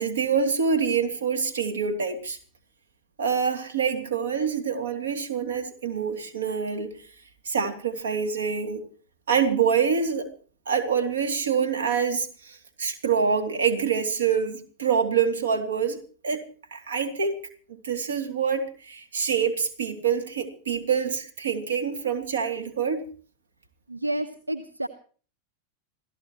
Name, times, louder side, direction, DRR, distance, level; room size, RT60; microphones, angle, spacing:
voice 1, 0.0-2.4 3.2-7.0 7.4-8.8 9.3-10.3 10.7-16.4 16.7-17.4 17.7-23.0, right 6 dB, 65° right, 6 dB, 2.9 m, -26 dB
voice 2, 23.9-24.9, right 1 dB, 85° right, 10 dB, 1.0 m, -30 dB
27.0 x 16.5 x 3.1 m, 0.42 s
figure-of-eight pair, 90°, 0 cm